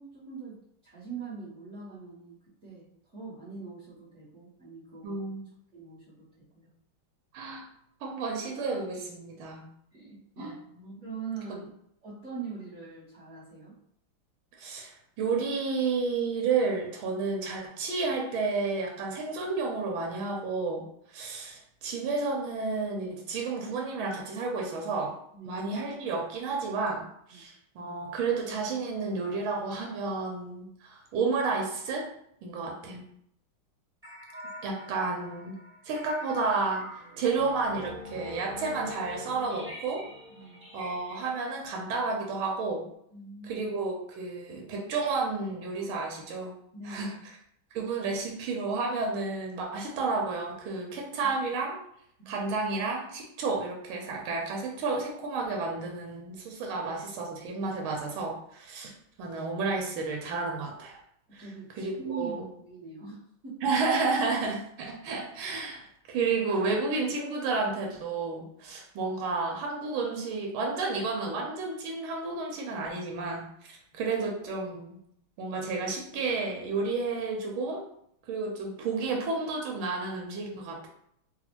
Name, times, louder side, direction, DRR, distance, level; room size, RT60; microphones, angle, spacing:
voice 1, 0.0-5.2 5.7-6.3 6.5-6.7 9.9-10.6 11.0-11.6 12.0-13.8 25.3-25.5 27.3-27.4 32.5-32.6 40.3-40.6 43.1-43.6 46.7-47.2 51.2-51.3 52.2-52.3 61.3-63.6, right 5 dB, 40° right, -10 dB, 1.3 m, -42 dB
voice 2, 5.0-5.5 7.3-7.6 8.0-9.7 10.4-10.5 14.6-25.1 25.5-32.1 32.4-33.0 34.6-35.6 35.8-36.9 37.2-40.1 40.7-42.9 43.5-46.5 46.9-47.1 47.7-51.8 52.3-58.9 59.2-61.0 61.3-61.4 61.8-62.4 63.6-75.0 75.4-77.8 78.3-80.9, right 4 dB, 85° right, 0 dB, 1.5 m, -31 dB
sound 1, 34.0-42.9, left 1 dB, 10° right, 0.8 m, -45 dB
4.1 x 2.3 x 2.9 m, 0.71 s
omnidirectional pair, 2.3 m